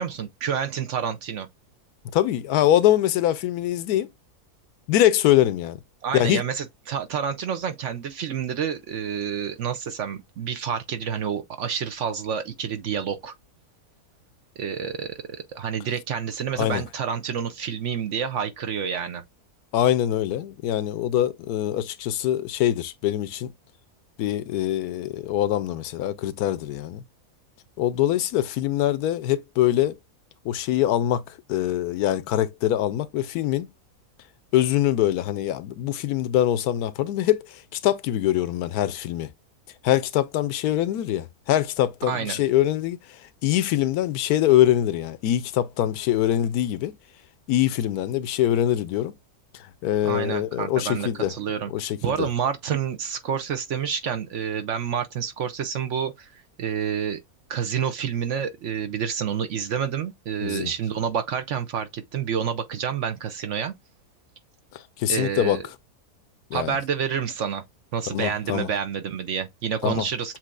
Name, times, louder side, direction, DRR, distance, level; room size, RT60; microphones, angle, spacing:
voice 1, 0.0-1.5 6.0-13.3 14.6-19.2 42.1-42.4 50.0-57.2 57.5-63.7 65.1-65.7 66.5-67.6 67.9-70.4, right 7 dB, 60° right, 0.8 m, -29 dB
voice 2, 2.1-4.1 4.9-5.8 6.1-6.4 16.6-16.8 19.7-23.5 24.2-27.0 27.8-30.0 30.4-33.7 34.5-39.3 39.8-46.9 47.5-49.1 49.5-51.3 51.7-52.3 60.4-60.7 64.7-65.6 66.5-66.8 68.1-68.7 69.8-70.1, left 12 dB, 80° left, 1.1 m, -23 dB
7.4 x 2.8 x 2.4 m
omnidirectional pair, 1.6 m